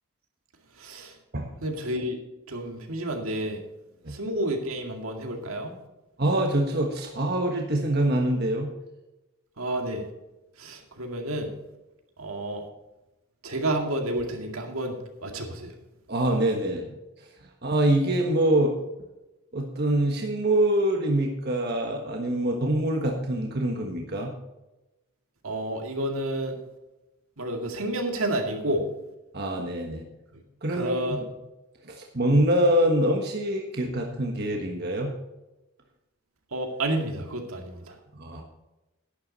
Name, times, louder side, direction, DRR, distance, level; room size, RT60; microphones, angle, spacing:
voice 1, 0.8-1.1 1.6-2.2 2.5-3.6 4.1-5.7 9.6-10.1 10.6-11.5 12.2-12.6 13.4-15.7 25.4-26.6 27.4-28.9 30.7-31.2 36.5-38.0, right 1 dB, 75° right, 3 dB, 2.2 m, -30 dB
voice 2, 6.2-8.7 16.1-16.9 17.6-18.7 19.5-24.3 29.3-30.0 30.6-31.0 31.8-35.1 38.2-38.4, right 1 dB, 45° right, 1 dB, 1.4 m, -25 dB
11.5 x 10.5 x 4.1 m, 1.0 s
head